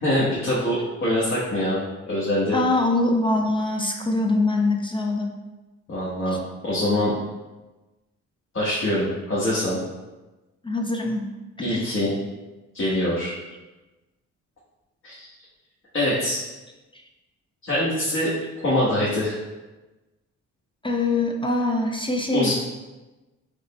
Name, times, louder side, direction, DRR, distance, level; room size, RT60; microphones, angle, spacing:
voice 1, 0.0-2.6 5.9-6.4 6.6-7.1 8.5-9.8 11.6-12.1 12.7-13.3 15.0-15.3 15.9-16.4 17.7-18.3 18.6-19.4 22.3-22.5, left 1 dB, 40° left, -8 dB, 1.2 m, -24 dB
voice 2, 2.5-5.3 10.6-11.3 11.6-11.9 16.9-17.0 20.8-22.5, left 2 dB, 15° left, 2 dB, 0.4 m, -23 dB
5.1 x 2.1 x 4.0 m, 1.1 s
cardioid pair, 90°, 30 cm